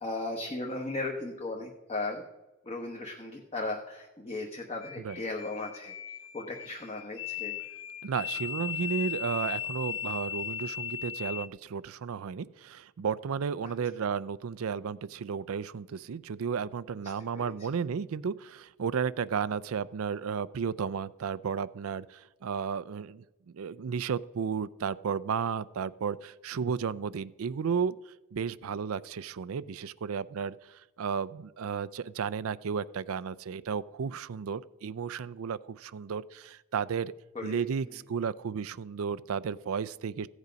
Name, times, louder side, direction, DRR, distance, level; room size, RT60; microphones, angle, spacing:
voice 1, 0.0-2.2 2.6-5.9 6.3-7.6 17.3-17.7 37.3-37.6, left 2 dB, 30° left, 1 dB, 1.1 m, -36 dB
sound 1, 4.8-11.5, left 9 dB, 65° left, 0.9 m, -37 dB
voice 2, 8.0-28.0 28.3-37.1 37.4-40.3, right 6 dB, 75° right, 16 dB, 0.4 m, -33 dB
15.0 x 8.2 x 5.2 m, 1.1 s
head